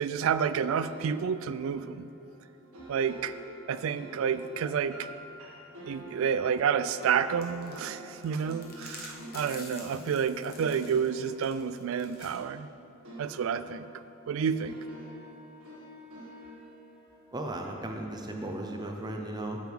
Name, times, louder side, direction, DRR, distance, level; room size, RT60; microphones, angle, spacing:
voice 1, 0.0-2.1 2.9-3.3 3.7-5.1 5.9-12.7 13.2-13.9 14.3-14.8, right 7 dB, 65° right, 13 dB, 0.3 m, -29 dB
sound 1, 0.8-12.7 13.0-18.3, equal, 80° right, 1.8 m, -48 dB
sound 2, 7.4-12.4, left 4 dB, 45° left, 1.1 m, -49 dB
voice 2, 17.3-19.6, right 1 dB, 20° right, 3 dB, 0.6 m, -36 dB
9.0 x 8.0 x 3.5 m, 2.7 s
head